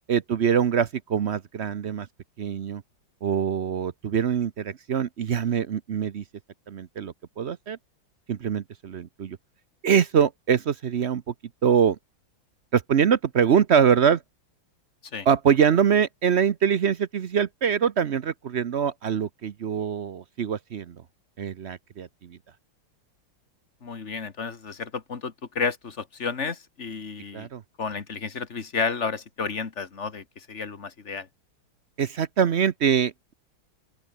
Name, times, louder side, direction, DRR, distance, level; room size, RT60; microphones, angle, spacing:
voice 1, 0.1-2.1 2.4-2.8 3.2-6.2 6.7-7.8 8.3-9.4 9.8-11.2 11.6-12.0 12.7-14.2 15.2-21.0 21.4-22.4 27.3-27.6 32.0-33.3, right 7 dB, 60° right, 0.6 m, -24 dB
voice 2, 23.8-27.5 27.8-31.3, left 5 dB, 35° left, 1.8 m, -31 dB
open air
omnidirectional pair, 2.2 m